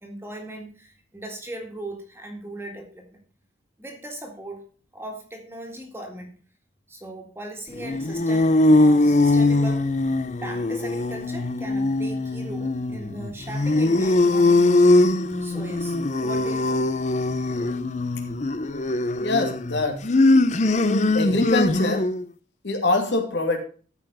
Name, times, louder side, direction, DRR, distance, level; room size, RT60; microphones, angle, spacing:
voice 1, 0.0-3.2 3.8-4.6 4.9-6.3 6.9-9.9 10.4-15.0 15.4-16.8, right 1 dB, 15° right, 3 dB, 2.0 m, -38 dB
sound 1, 7.8-22.2, left 2 dB, 40° left, 0.6 m, -21 dB
voice 2, 19.2-20.1 21.1-22.1 22.6-23.6, left 2 dB, 70° left, 3 dB, 2.5 m, -24 dB
14.0 x 5.7 x 5.5 m, 0.41 s
head